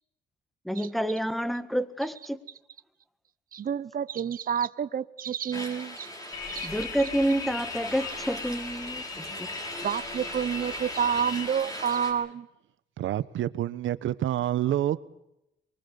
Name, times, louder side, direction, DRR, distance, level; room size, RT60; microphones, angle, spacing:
voice 1, 0.7-2.4 6.6-9.5, right 1 dB, ahead, 1.7 m, -29 dB
voice 2, 3.5-6.1 6.5-6.7 9.8-12.5, right 8 dB, 45° right, 0.9 m, -29 dB
sound 1, 5.5-12.1, equal, 20° left, 7.2 m, -38 dB
sound 2, 6.3-11.5, left 7 dB, 90° left, 2.6 m, -40 dB
voice 3, 13.0-15.0, right 12 dB, 75° right, 1.2 m, -28 dB
24.5 x 23.5 x 7.0 m
cardioid pair, 90°, 20 cm